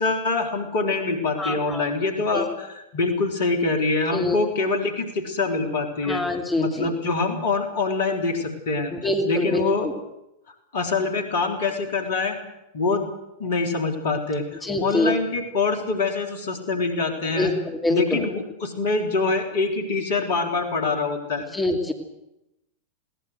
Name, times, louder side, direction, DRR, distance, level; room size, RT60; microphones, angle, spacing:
voice 1, 0.0-6.2 6.6-8.9 9.3-9.9 10.7-12.4 12.7-13.1 13.4-17.5 17.9-21.5, left 3 dB, 55° left, 4 dB, 3.6 m, -25 dB
voice 2, 1.4-1.9 2.3-2.5 4.1-4.4 6.0-6.9 8.9-9.9 14.6-15.1 17.4-17.5 17.8-18.3 21.5-21.9, left 2 dB, 10° left, 2 dB, 2.8 m, -25 dB
21.5 x 18.0 x 8.0 m, 0.90 s
figure-of-eight pair, 90°, 0 cm